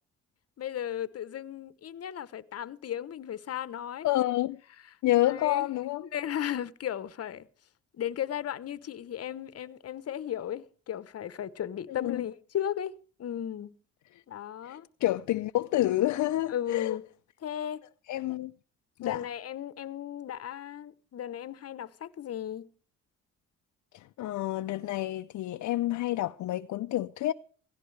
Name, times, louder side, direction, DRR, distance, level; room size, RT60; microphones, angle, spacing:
voice 1, 0.6-4.1 5.2-5.7 6.1-7.5 7.9-13.7 14.3-14.9 16.5-17.0 17.4-17.9 19.0-22.7, left 10 dB, 55° left, 1.0 m, -35 dB
voice 2, 4.0-4.6 5.0-6.0 11.9-12.2 14.6-17.0 18.1-18.5 19.0-19.2 23.9-27.3, left 15 dB, 70° left, 0.6 m, -29 dB
16.5 x 16.5 x 3.3 m
cardioid pair, 90°, 30 cm